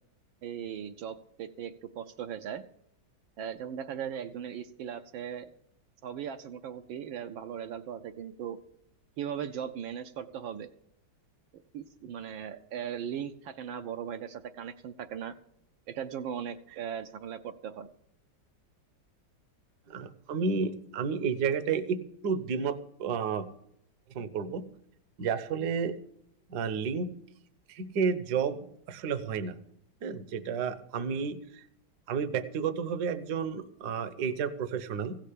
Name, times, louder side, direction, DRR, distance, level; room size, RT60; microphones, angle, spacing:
voice 1, 0.4-2.6 3.4-5.5 6.0-8.6 9.2-10.7 11.5-15.4 15.9-17.9, right 8 dB, 75° right, 7 dB, 1.4 m, -38 dB
voice 2, 19.9-23.5 24.1-24.6 25.2-25.9 26.5-27.1 27.7-29.6 30.0-31.6 32.1-35.2, right 6 dB, 60° right, 13 dB, 1.3 m, -31 dB
16.0 x 6.7 x 8.4 m, 0.75 s
omnidirectional pair, 2.2 m